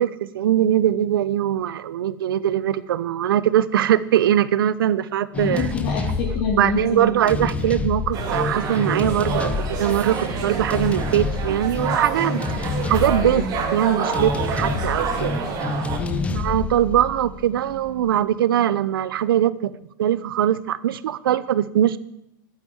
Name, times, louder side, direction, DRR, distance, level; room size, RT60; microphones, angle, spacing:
voice 1, 0.0-5.7 6.5-15.4 16.3-19.7 20.0-22.0, right 11 dB, 85° right, 17 dB, 0.8 m, -21 dB
voice 2, 5.3-7.1 7.4-7.5 12.4-12.6 13.2-13.4 16.0-16.3, left 3 dB, 45° left, -3 dB, 3.2 m, -27 dB
sound 1, 5.3-18.1, left 4 dB, 10° left, 0.8 m, -28 dB
sound 2, 8.1-16.0, right 5 dB, 35° right, 3.0 m, -28 dB
12.0 x 8.8 x 9.5 m, 0.83 s
supercardioid pair, 135°, 12 cm